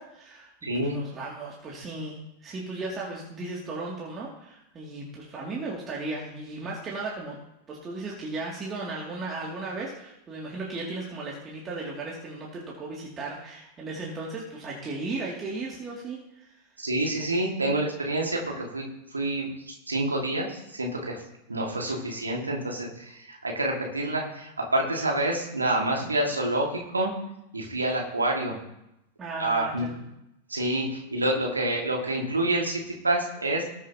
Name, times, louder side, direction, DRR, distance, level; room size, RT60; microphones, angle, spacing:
voice 1, 0.0-0.5 0.8-7.4 7.7-16.6 29.2-29.9, right 3 dB, 25° right, -4 dB, 2.6 m, -36 dB
voice 2, 0.6-1.0 16.8-18.8 19.1-21.2 21.5-27.1 27.5-28.6 29.4-29.9 30.5-33.6, right 1 dB, 80° right, -1 dB, 2.2 m, -28 dB
19.0 x 7.4 x 3.0 m, 0.86 s
figure-of-eight pair, 90°, 0 cm